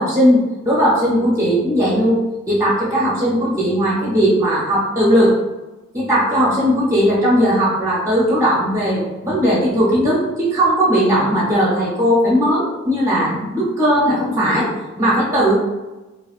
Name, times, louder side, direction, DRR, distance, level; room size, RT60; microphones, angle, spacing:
voice 1, 0.0-5.4 5.9-14.7 15.0-15.5, equal, 15° right, -6 dB, 0.6 m, -17 dB
2.4 x 2.3 x 2.4 m, 1.1 s
head